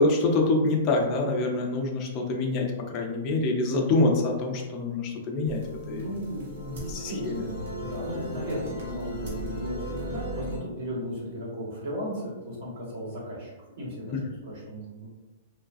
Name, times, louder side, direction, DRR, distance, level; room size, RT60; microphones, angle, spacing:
voice 1, 0.0-6.1 6.9-7.4 14.1-14.2, left 2 dB, 25° left, 0 dB, 0.5 m, -25 dB
sound 1, 5.5-10.6, equal, 70° right, 1.0 m, -36 dB
voice 2, 5.8-13.5 13.8-14.2 14.5-15.1, equal, 55° right, -4 dB, 1.2 m, -36 dB
3.2 x 2.3 x 2.5 m, 1.1 s
hypercardioid pair, 160°, 0 cm